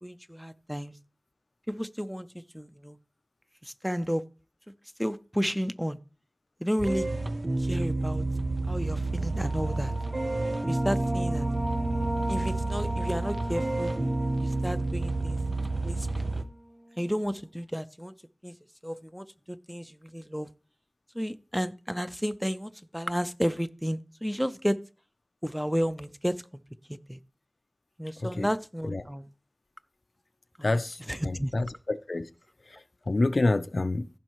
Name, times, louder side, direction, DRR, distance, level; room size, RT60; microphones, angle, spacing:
voice 1, 0.0-0.9 1.7-3.0 3.6-4.2 5.0-6.0 6.6-7.1 7.6-8.2 8.7-9.9 10.7-11.5 12.3-14.0 14.4-15.4 15.8-16.1 17.0-18.1 18.4-18.6 18.8-20.5 21.1-24.8 25.4-26.4 27.1-27.2 28.0-29.3 30.6-30.7 31.1-31.5, equal, ahead, 0.6 m, -32 dB
sound 1, 6.8-16.4, right 2 dB, 50° right, 0.7 m, -30 dB
sound 2, 9.2-16.4, equal, 35° right, 2.2 m, -36 dB
voice 2, 30.6-31.0 31.2-32.3 32.7-32.8 33.1-34.1, left 2 dB, 80° left, 0.5 m, -27 dB
15.0 x 5.5 x 3.1 m
wide cardioid pair, 50°, 0 cm